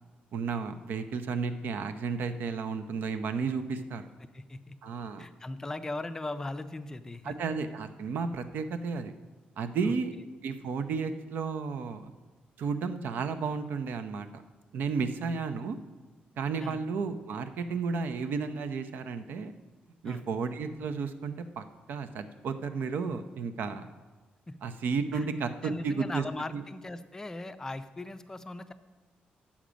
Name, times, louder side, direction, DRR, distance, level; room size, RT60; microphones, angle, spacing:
voice 1, 0.3-4.0 4.8-5.3 7.2-9.1 9.6-10.1 10.4-12.1 12.6-14.4 14.7-15.8 16.4-19.5 20.0-23.9 24.6-26.2 26.5-26.6, right 5 dB, 70° right, 9 dB, 0.7 m, -33 dB
voice 2, 4.3-4.8 5.2-7.4 9.8-10.0 16.6-16.8 20.0-20.2 24.5-24.6 25.1-25.3 25.6-28.7, left 2 dB, 15° left, 10 dB, 0.4 m, -39 dB
10.0 x 7.3 x 5.1 m, 1.3 s
cardioid pair, 140°, 3 cm